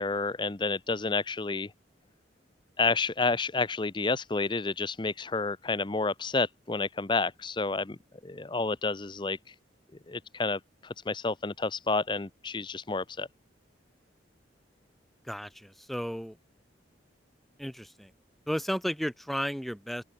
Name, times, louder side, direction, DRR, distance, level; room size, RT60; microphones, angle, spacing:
voice 1, 0.0-1.7 2.8-8.0 8.2-9.4 10.1-13.3, left 3 dB, 25° left, 0.7 m, -30 dB
voice 2, 15.2-16.4 17.6-18.1 18.5-20.0, equal, ahead, 0.9 m, -33 dB
open air
head